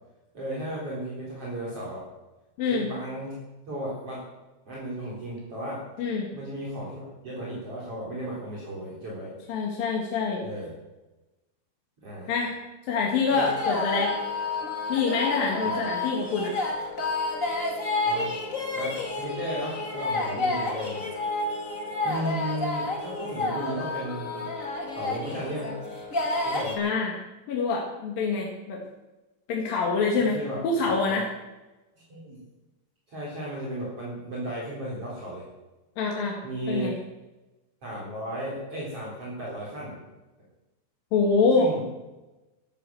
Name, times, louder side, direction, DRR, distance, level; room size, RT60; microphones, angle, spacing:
voice 1, 0.3-2.1 2.7-3.3 3.7-4.2 4.7-5.8 6.3-9.3 10.4-10.7 12.0-12.3 13.3-13.5 15.6-16.2 18.0-18.3 18.7-21.1 22.0-24.5 24.9-25.7 26.4-26.8 30.2-31.2 32.1-32.4 33.1-35.5 36.4-36.9 37.8-40.0 41.5-41.8, right 1 dB, 35° right, -6 dB, 4.9 m, -35 dB
voice 2, 2.6-2.9 6.0-6.3 9.5-10.5 12.3-12.6 12.9-14.2 14.9-16.5 26.8-27.2 27.5-28.8 29.5-30.4 30.6-31.3 36.0-36.4 36.7-37.0 41.1-41.7, left 4 dB, 65° left, -1 dB, 3.5 m, -25 dB
sound 1, 13.3-26.7, left 2 dB, 25° left, 1.9 m, -30 dB
13.0 x 13.0 x 7.7 m, 1.1 s
omnidirectional pair, 4.5 m